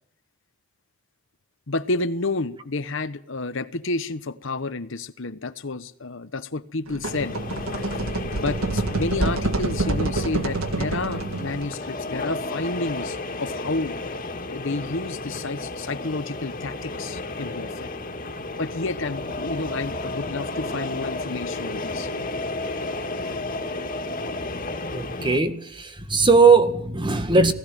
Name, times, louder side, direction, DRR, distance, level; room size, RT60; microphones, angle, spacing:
voice 1, 1.7-7.4 7.8-8.0 8.4-14.0 14.5-17.9 18.6-22.1 25.2-25.3, left 3 dB, 65° left, 1.1 m, -30 dB
sound 1, 6.9-11.7, right 2 dB, 85° right, 1.8 m, -27 dB
sound 2, 7.0-25.4, left 2 dB, 40° left, 2.3 m, -32 dB
voice 2, 24.9-27.5, right 4 dB, 25° right, 1.8 m, -19 dB
20.0 x 15.5 x 9.2 m
head